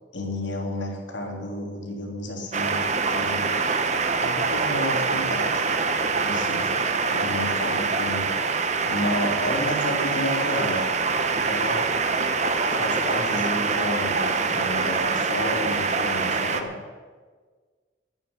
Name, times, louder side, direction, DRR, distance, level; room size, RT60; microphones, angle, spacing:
voice 1, 0.1-3.5 4.2-5.6 6.2-8.3 8.8-10.8 11.2-11.9 12.7-16.7, left 1 dB, 90° left, 1 dB, 3.1 m, -31 dB
sound 1, 2.5-16.6, right 4 dB, 40° right, 1.0 m, -24 dB
11.5 x 9.0 x 9.5 m, 1.5 s
head